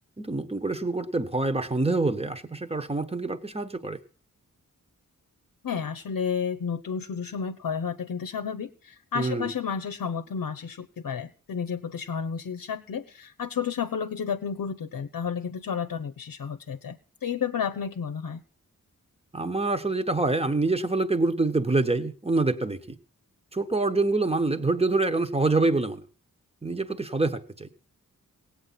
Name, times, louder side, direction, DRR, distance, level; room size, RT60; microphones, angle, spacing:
voice 1, 0.2-4.0 9.1-9.5 19.3-22.9 23.5-26.0 26.6-27.7, right 3 dB, 15° right, 9 dB, 1.2 m, -26 dB
voice 2, 5.6-18.4, left 6 dB, 75° left, 8 dB, 0.8 m, -31 dB
17.0 x 8.6 x 5.8 m, 0.40 s
cardioid pair, 55°, 34 cm